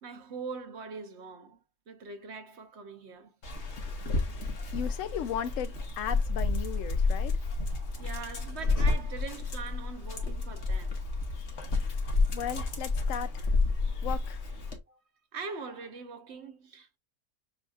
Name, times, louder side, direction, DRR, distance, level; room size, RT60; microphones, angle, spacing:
voice 1, 0.0-1.6 1.9-3.3 8.0-11.0 13.9-14.0 14.9-15.0 15.3-17.0, right 4 dB, 55° right, 1.0 m, -42 dB
Dog, 3.4-14.8, left 3 dB, 50° left, 1.3 m, -30 dB
voice 2, 4.7-7.4 11.8-12.0 12.3-13.5 14.0-14.4, left 9 dB, 70° left, 0.9 m, -36 dB
7.0 x 2.9 x 2.4 m
omnidirectional pair, 1.6 m